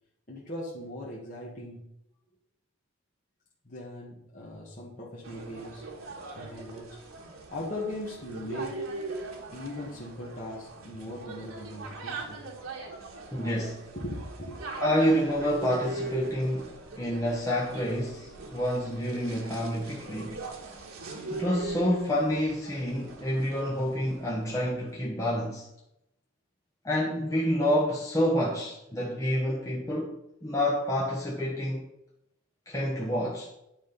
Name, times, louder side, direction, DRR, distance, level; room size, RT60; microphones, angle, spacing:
voice 1, 0.3-1.9 3.6-5.9 6.3-7.0 7.5-8.9 9.5-12.4 13.9-14.6, left 1 dB, 40° left, 1.5 m, -39 dB
sound 1, 5.2-24.5, right 3 dB, 85° right, 1.6 m, -41 dB
voice 2, 13.3-14.0 14.8-20.4 21.3-25.7 26.8-31.8 32.7-33.5, equal, 15° left, 1.3 m, -28 dB
9.3 x 5.0 x 5.3 m
head